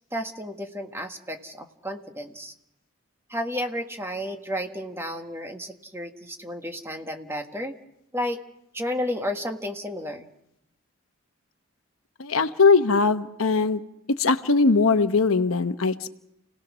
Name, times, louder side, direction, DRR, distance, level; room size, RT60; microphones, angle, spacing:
voice 1, 0.1-2.5 3.3-7.7 8.1-8.4 8.7-10.3, equal, 10° right, 4 dB, 1.6 m, -32 dB
voice 2, 12.2-13.8 14.2-16.1, left 4 dB, 85° left, 10 dB, 1.1 m, -20 dB
29.5 x 18.0 x 6.3 m, 0.80 s
head